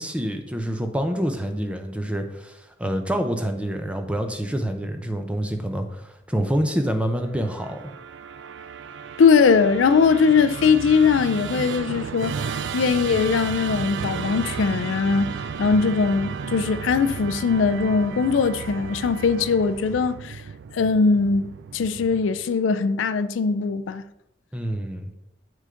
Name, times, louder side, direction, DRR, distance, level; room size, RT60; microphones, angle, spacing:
voice 1, 0.0-7.9 24.5-25.1, equal, 5° right, 0.6 m, -27 dB
Musical instrument, 7.3-22.6, right 6 dB, 70° right, 0.3 m, -34 dB
voice 2, 9.2-15.3 15.6-20.4 20.7-24.0, left 5 dB, 85° left, 0.4 m, -20 dB
sound 1, 11.5-20.1, equal, 25° left, 1.8 m, -49 dB
6.2 x 3.8 x 5.6 m
head